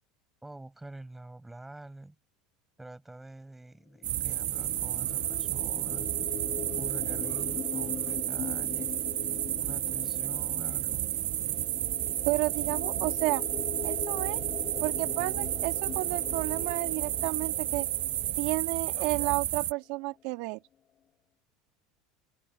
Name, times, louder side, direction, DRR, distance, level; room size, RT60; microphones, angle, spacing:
voice 1, 0.4-2.2 2.8-6.1 6.8-9.0 9.6-11.1, right 2 dB, 10° right, 7.8 m, -46 dB
sound 1, 4.0-19.6, left 9 dB, 40° left, 1.3 m, -42 dB
sound 2, 4.0-19.7, right 14 dB, 55° right, 1.2 m, -31 dB
voice 2, 12.2-13.4 13.8-14.4 14.8-17.9 18.4-20.6, right 24 dB, 70° right, 1.8 m, -31 dB
open air
supercardioid pair, 95°, 2 cm